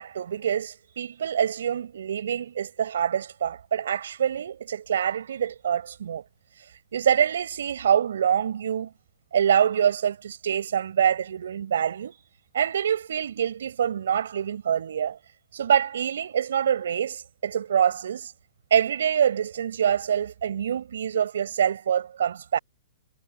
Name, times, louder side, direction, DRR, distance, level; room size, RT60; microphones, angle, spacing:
voice 1, 0.0-6.2 6.9-8.9 9.3-12.1 12.5-15.2 15.5-18.3 18.7-22.6, right 8 dB, 75° right, 7.5 m, -25 dB
hypercardioid pair, 140°, 0 cm